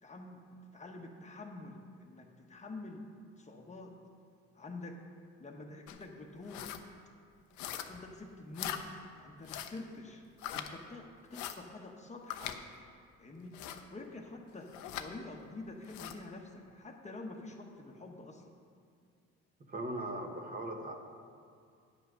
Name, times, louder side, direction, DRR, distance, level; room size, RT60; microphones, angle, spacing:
voice 1, 0.0-3.0 3.4-3.9 4.5-5.0 5.4-6.7 7.6-10.2 10.5-12.7 13.2-18.6, left 2 dB, 25° left, 2 dB, 0.9 m, -47 dB
sound 1, 5.9-6.0 6.4-6.8 7.6-8.1 8.5-8.8 9.4-9.8 10.4-10.7 11.3-11.6 12.3-12.6 13.5-13.8 14.7-15.1 15.8-16.2, left 11 dB, 90° left, 0.7 m, -41 dB
voice 2, 19.7-21.0, right 1 dB, 30° right, 3 dB, 1.0 m, -39 dB
9.4 x 5.7 x 6.4 m, 2.3 s
cardioid pair, 105°, 29 cm